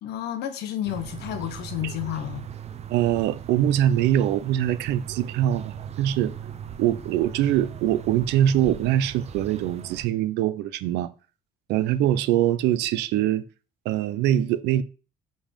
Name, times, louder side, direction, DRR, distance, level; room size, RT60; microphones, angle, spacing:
voice 1, 0.0-2.5, left 11 dB, 80° left, 1.0 m, -31 dB
sound 1, 0.9-10.1, right 8 dB, 40° right, 0.6 m, -39 dB
voice 2, 2.9-6.3 6.8-11.1 11.7-13.4 13.9-14.8, right 11 dB, 90° right, 0.6 m, -23 dB
5.4 x 5.3 x 5.0 m
cardioid pair, 110°, 17 cm